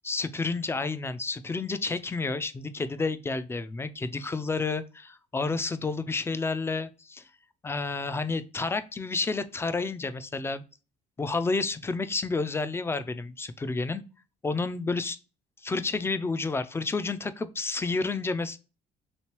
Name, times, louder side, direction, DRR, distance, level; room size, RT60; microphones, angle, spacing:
voice 1, 0.0-7.2 7.6-10.6 11.2-14.0 14.4-15.2 15.6-18.6, left 3 dB, 15° left, 0.3 m, -30 dB
3.2 x 3.1 x 2.9 m
cardioid pair, 110°, 17 cm